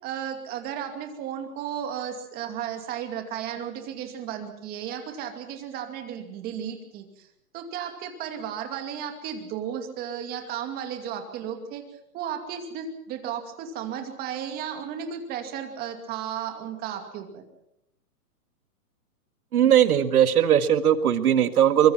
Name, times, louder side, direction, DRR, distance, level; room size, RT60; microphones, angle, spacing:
voice 1, 0.0-17.4, right 8 dB, 20° right, 6 dB, 2.5 m, -34 dB
voice 2, 19.5-21.9, right 10 dB, 70° right, 11 dB, 2.0 m, -19 dB
24.0 x 22.5 x 5.9 m, 0.79 s
hypercardioid pair, 160°, 45 cm